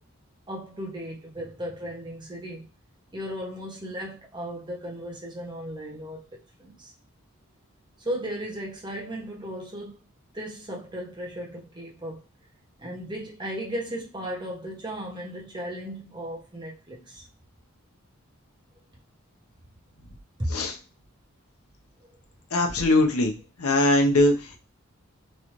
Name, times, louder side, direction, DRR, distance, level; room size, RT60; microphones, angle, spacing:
voice 1, 0.5-2.7 3.1-6.9 8.0-10.0 10.3-12.2 12.8-17.2 20.4-20.6 22.0-22.1, equal, 20° right, 0.8 m, -35 dB
voice 2, 22.5-23.3 23.6-24.3, left 1 dB, 85° left, 0.8 m, -20 dB
3.1 x 2.6 x 3.0 m
head